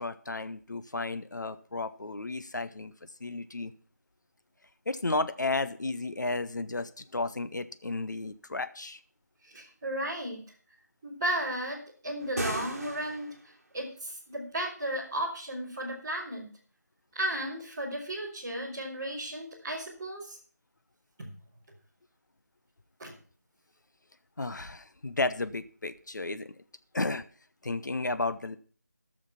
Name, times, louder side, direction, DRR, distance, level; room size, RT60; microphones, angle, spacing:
voice 1, 0.0-2.9 3.2-3.7 4.9-9.0 24.4-26.5 26.9-27.2 27.6-28.6, left 3 dB, 85° left, 11 dB, 1.0 m, -33 dB
voice 2, 9.4-10.4 11.0-13.3 13.7-16.5 17.1-20.4 21.2-21.3 23.0-23.1, right 1 dB, 10° right, -10 dB, 3.1 m, -34 dB
sound 1, 12.2-13.5, right 2 dB, 50° right, 2.5 m, -36 dB
15.0 x 6.5 x 5.8 m, 0.42 s
figure-of-eight pair, 180°, 10 cm